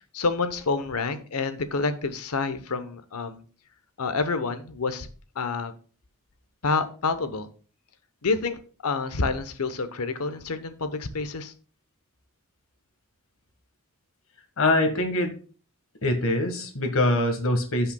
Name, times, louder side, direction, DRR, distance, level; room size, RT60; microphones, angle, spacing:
voice 1, 0.1-3.4 4.0-5.1 5.4-5.7 6.6-7.5 8.2-11.5, left 4 dB, 85° left, 10 dB, 0.9 m, -28 dB
voice 2, 14.6-15.3 16.0-17.9, left 1 dB, 65° left, 5 dB, 1.6 m, -23 dB
16.0 x 5.6 x 2.3 m, 0.40 s
head